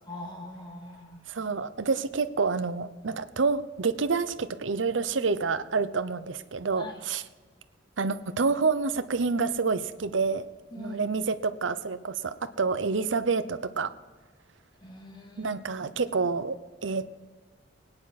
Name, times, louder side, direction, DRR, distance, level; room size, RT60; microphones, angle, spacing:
voice 1, 0.1-1.3 6.8-7.0 10.7-11.0 14.8-15.6, left 2 dB, 25° left, 2 dB, 2.1 m, -42 dB
voice 2, 1.3-7.2 8.0-10.5 10.8-13.9 15.4-17.1, right 4 dB, 80° right, 13 dB, 0.7 m, -28 dB
22.0 x 9.8 x 4.2 m, 1.3 s
head